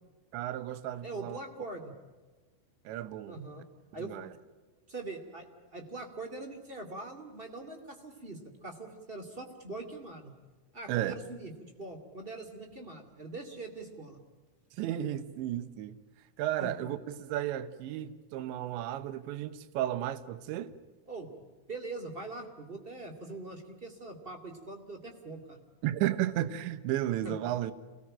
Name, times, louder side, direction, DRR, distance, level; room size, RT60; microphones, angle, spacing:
voice 1, 0.3-1.4 2.8-3.4 4.0-4.3 10.9-11.2 14.7-16.0 16.4-20.7 25.8-27.7, right 12 dB, 70° right, 3.1 m, -33 dB
voice 2, 1.0-1.9 3.2-3.6 3.9-4.1 4.9-10.3 10.7-14.2 16.6-16.9 21.1-21.3 21.7-25.6 27.2-27.3, right 2 dB, 25° right, 1.1 m, -42 dB
28.0 x 20.0 x 8.8 m
omnidirectional pair, 6.0 m